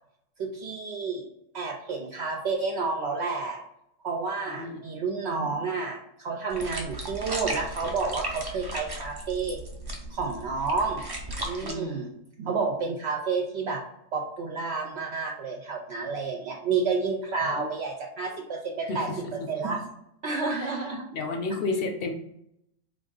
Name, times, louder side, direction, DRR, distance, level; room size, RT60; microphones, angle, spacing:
voice 1, 0.4-1.3 1.5-3.6 4.0-9.6 10.1-11.0 11.4-13.8 14.1-19.1 19.5-19.8 20.2-21.0, right 4 dB, 65° right, 0 dB, 0.8 m, -30 dB
sound 1, 6.5-11.7, right 2 dB, 30° right, 0.5 m, -36 dB
voice 2, 11.6-12.1 17.4-17.7 18.9-19.0 19.4-19.6 20.6-20.7 21.1-22.1, left 3 dB, 55° left, 4 dB, 0.8 m, -31 dB
3.5 x 2.6 x 3.8 m, 0.78 s
omnidirectional pair, 1.3 m